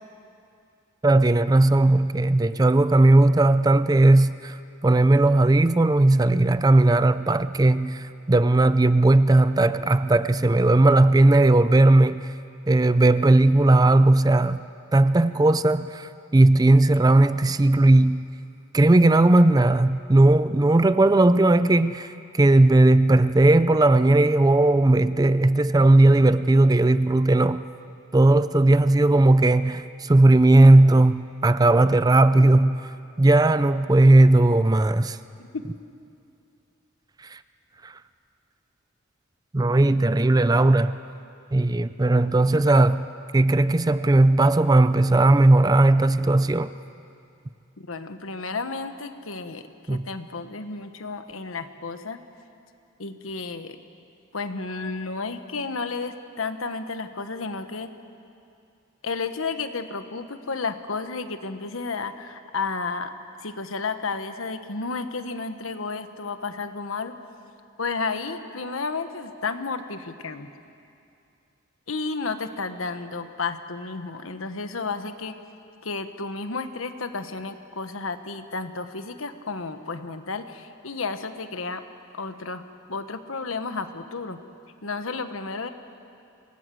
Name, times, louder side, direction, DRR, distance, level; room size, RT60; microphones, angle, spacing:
voice 1, 1.0-4.6 4.8-12.3 12.7-14.6 14.9-18.2 18.7-27.6 28.1-35.2 37.2-37.4 37.8-37.9 39.5-41.0 41.5-43.1 43.3-46.7 49.9-50.1, right 2 dB, 20° right, 0.4 m, -17 dB
voice 2, 47.8-52.2 53.0-53.8 54.3-57.9 59.0-63.1 63.4-67.1 67.8-70.5 71.9-75.3 75.8-81.8 82.1-82.6 82.9-84.4 84.8-85.7, left 4 dB, 90° left, 1.3 m, -32 dB
26.5 x 19.0 x 7.7 m
head